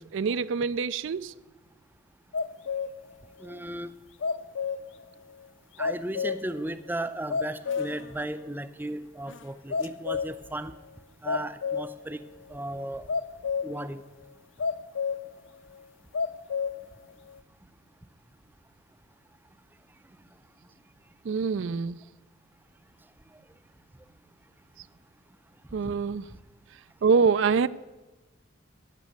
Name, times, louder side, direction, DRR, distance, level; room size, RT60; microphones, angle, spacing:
voice 1, 0.0-1.3 21.2-22.0 25.7-26.2 27.0-27.7, right 5 dB, 70° right, 0.4 m, -25 dB
sound 1, 2.3-3.1 3.4-3.5 4.2-5.0 5.4-5.5 5.8-6.6 6.9-7.0 7.3-8.1 8.5-8.6 9.3-9.4 9.7-10.5 11.3-12.0 13.1-13.8 14.6-15.3 15.7-15.8 16.1-16.8 17.3-17.4, left 5 dB, 70° left, 0.5 m, -30 dB
voice 2, 3.4-3.9 5.8-10.8 11.2-12.2 12.5-13.1 13.6-14.0 25.8-25.9, right 1 dB, 10° right, 0.5 m, -35 dB
14.5 x 6.1 x 9.3 m
head